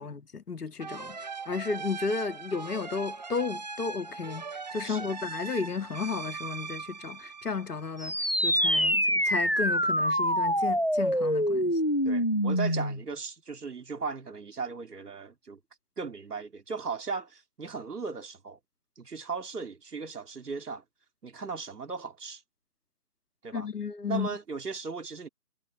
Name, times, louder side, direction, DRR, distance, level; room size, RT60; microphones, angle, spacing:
voice 1, 0.0-4.4 4.7-11.8 23.5-24.3, left 5 dB, 80° left, 2.1 m, -33 dB
sound 1, 0.8-8.2, right 5 dB, 30° right, 1.4 m, -40 dB
voice 2, 4.8-5.2 12.0-15.6 16.0-18.6 19.0-20.8 21.2-22.4 23.4-23.7 24.1-25.3, right 5 dB, 80° right, 2.9 m, -37 dB
sound 2, 8.0-13.0, equal, 40° left, 0.4 m, -25 dB
hypercardioid pair, 175°, 46 cm